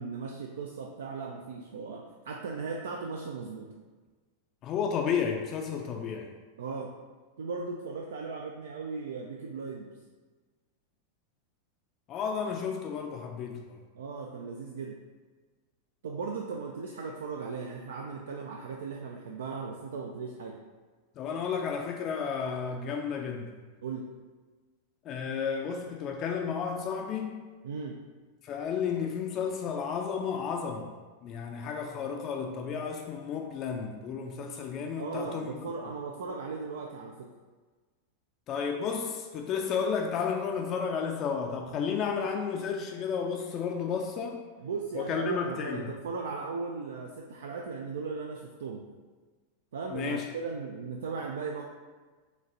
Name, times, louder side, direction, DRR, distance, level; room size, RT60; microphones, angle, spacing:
voice 1, 0.0-3.7 6.6-6.9 7.4-9.9 13.9-15.0 16.0-20.5 23.8-24.1 27.6-28.0 35.0-37.3 44.6-48.8 49.7-51.6, right 4 dB, 60° right, 0 dB, 0.3 m, -37 dB
voice 2, 4.6-6.3 12.1-13.8 21.2-23.6 25.1-27.4 28.4-30.9 31.2-35.5 38.5-44.4 44.9-45.9 49.9-50.2, left 6 dB, 35° left, 2 dB, 0.4 m, -32 dB
5.0 x 3.2 x 2.6 m, 1.4 s
figure-of-eight pair, 90°, 0 cm